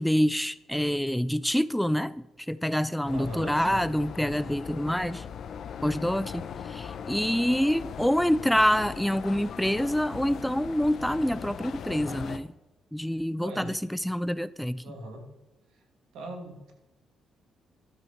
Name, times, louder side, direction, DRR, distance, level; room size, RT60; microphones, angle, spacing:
voice 1, 0.0-5.2 5.8-12.5 12.9-14.8, equal, ahead, 0.3 m, -26 dB
sound 1, 3.0-12.4, left 7 dB, 60° left, 0.8 m, -39 dB
voice 2, 3.1-3.9 13.4-14.1 14.8-15.3 15.7-15.8 16.1-16.7, equal, 80° right, 2.6 m, -41 dB
12.5 x 8.6 x 4.5 m
cardioid pair, 90°, 0 cm